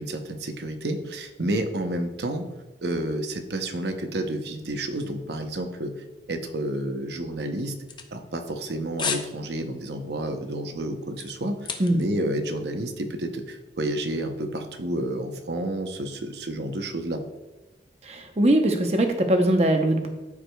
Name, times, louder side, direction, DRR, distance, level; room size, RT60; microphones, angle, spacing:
voice 1, 0.0-2.5 2.8-5.9 6.3-7.8 8.1-11.6 11.9-17.2, right 1 dB, 75° right, 6 dB, 0.8 m, -30 dB
sound 1, 7.6-8.6 9.0-9.3 9.7-9.9 10.4-12.2 12.4-12.5, left 6 dB, 25° left, 0.5 m, -33 dB
voice 2, 18.1-20.1, right 1 dB, 35° right, 5 dB, 0.8 m, -21 dB
13.0 x 4.8 x 2.3 m, 1.1 s
head